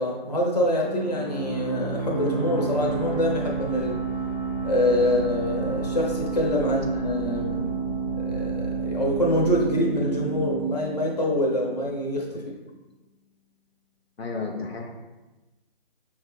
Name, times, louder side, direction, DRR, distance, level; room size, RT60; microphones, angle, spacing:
voice 1, 0.0-4.0 4.6-7.8 8.2-12.4, left 1 dB, 40° left, -1 dB, 1.0 m, -25 dB
sound 1, 0.8-12.2, right 4 dB, 15° right, 0.5 m, -30 dB
sound 2, 2.8-9.6, right 3 dB, 85° right, 0.6 m, -37 dB
voice 2, 14.2-15.0, left 4 dB, 80° left, 1 dB, 0.6 m, -33 dB
6.1 x 2.3 x 3.2 m, 1.1 s
figure-of-eight pair, 150°, 30 cm